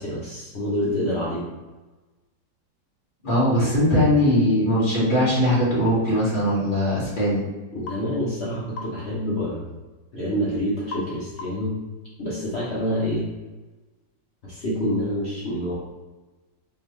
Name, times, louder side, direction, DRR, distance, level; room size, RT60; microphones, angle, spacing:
voice 1, 0.0-1.6 3.6-3.7 7.7-9.7 10.1-11.7 12.2-13.2 14.4-15.7, equal, 50° left, -7 dB, 0.8 m, -27 dB
voice 2, 3.2-7.4, equal, 30° left, -9 dB, 1.6 m, -20 dB
sound 1, 7.9-8.0 8.8-9.0 10.9-11.1 11.4-11.7, left 4 dB, 85° left, 1.4 m, -36 dB
3.8 x 2.9 x 3.1 m, 1.2 s
omnidirectional pair, 2.0 m